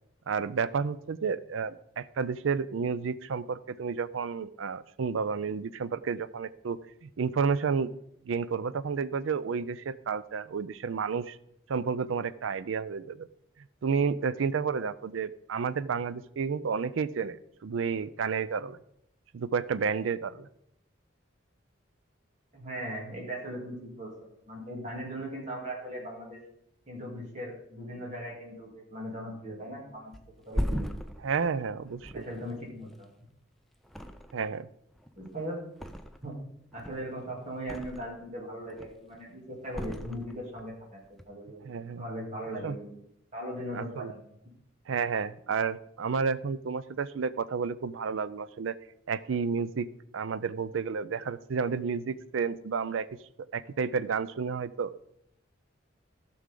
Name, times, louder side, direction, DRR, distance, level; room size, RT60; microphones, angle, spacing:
voice 1, 0.3-7.9 8.3-11.4 11.7-13.3 13.8-17.4 17.6-18.8 19.3-20.5 31.2-32.2 34.3-34.7 41.6-42.0 42.6-42.8 43.7-44.1 44.9-48.8 49.1-49.9 50.1-53.1 53.5-54.9, right 5 dB, 80° right, 16 dB, 0.4 m, -31 dB
voice 2, 22.5-24.1 24.5-26.4 26.9-30.1 30.4-30.9 32.1-33.1 35.2-35.6 36.2-36.4 36.7-41.0 41.3-41.6 42.0-42.9 43.3-44.2, equal, 35° right, -4 dB, 2.9 m, -38 dB
Thump thud, 30.1-33.4 33.8-34.6 34.9-36.4 36.7-38.3 38.6-39.2 39.7-40.7 41.0-41.2, equal, ahead, 0.5 m, -37 dB
14.5 x 6.2 x 3.8 m, 0.76 s
head